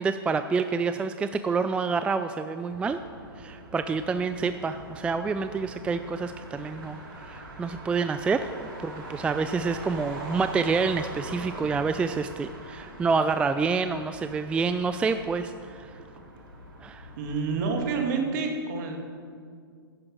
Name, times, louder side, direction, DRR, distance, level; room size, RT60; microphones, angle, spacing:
voice 1, 0.0-3.0 3.4-15.9 16.8-17.1, right 4 dB, 10° right, 10 dB, 0.3 m, -28 dB
Motor vehicle (road), 2.7-17.7, right 1 dB, 65° right, 3.8 m, -43 dB
voice 2, 17.2-19.0, right 4 dB, 50° right, 3 dB, 2.1 m, -28 dB
11.5 x 9.6 x 6.2 m, 2.2 s
hypercardioid pair, 115°, 13 cm